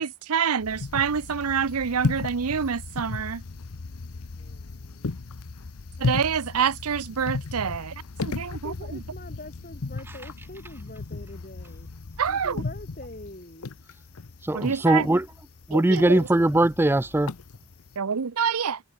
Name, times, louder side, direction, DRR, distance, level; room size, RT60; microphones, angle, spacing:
voice 1, 0.0-3.4 6.0-7.9 8.2-8.7 12.2-12.6 14.5-15.1 15.7-16.3 18.0-18.8, right 6 dB, 85° right, 0.7 m, -27 dB
sound 1, 0.6-18.0, left 3 dB, 80° left, 0.8 m, -35 dB
voice 2, 4.3-5.1 8.4-11.9 12.3-13.8, left 1 dB, 40° left, 3.7 m, -44 dB
voice 3, 14.4-15.3 15.7-17.3, right 1 dB, 10° right, 0.3 m, -21 dB
head